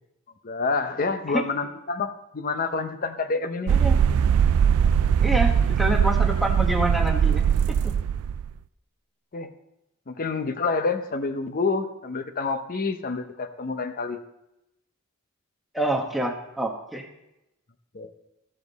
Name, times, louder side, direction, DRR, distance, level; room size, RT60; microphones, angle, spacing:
voice 1, 0.4-3.7 7.3-7.4 9.3-9.5 10.1-14.2 17.9-18.1, left 4 dB, 40° left, 9 dB, 0.7 m, -28 dB
voice 2, 3.7-4.0 5.2-7.9 15.7-17.1, right 1 dB, ahead, 0 dB, 1.1 m, -27 dB
sound 1, 3.7-8.5, right 7 dB, 80° right, 0.3 m, -21 dB
13.0 x 7.3 x 4.1 m, 0.91 s
head